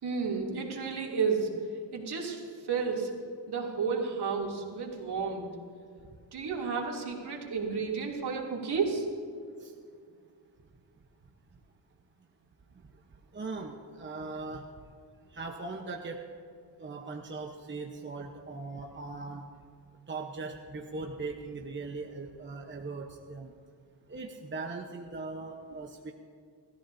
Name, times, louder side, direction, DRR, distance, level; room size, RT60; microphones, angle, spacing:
voice 1, 0.0-1.5 1.9-3.1 3.5-5.5 6.3-9.1, right 5 dB, 60° right, -1 dB, 3.0 m, -32 dB
voice 2, 13.3-14.6 15.3-16.2 16.8-19.4 20.1-23.5 24.1-26.1, right 3 dB, 25° right, 2 dB, 1.0 m, -39 dB
30.0 x 14.0 x 2.8 m, 2.2 s
cardioid pair, 100°, 44 cm